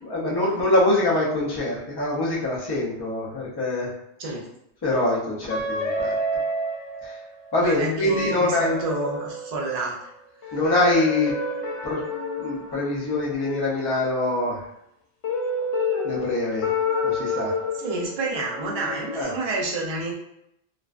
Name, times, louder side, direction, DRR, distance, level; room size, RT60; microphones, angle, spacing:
voice 1, 0.0-3.9 4.8-6.2 7.0-7.2 7.5-8.8 10.5-11.4 11.8-12.0 12.4-14.7 16.0-16.7 17.0-17.5 19.1-19.3, left 2 dB, 30° left, -5 dB, 0.4 m, -24 dB
sound 1, 5.5-7.6 8.1-9.8 10.4-13.9 15.2-19.2, left 2 dB, 85° left, 1.0 m, -29 dB
voice 2, 7.6-10.1 17.8-20.1, right 2 dB, 45° right, -2 dB, 0.5 m, -29 dB
2.4 x 2.2 x 2.4 m, 0.79 s
omnidirectional pair, 1.1 m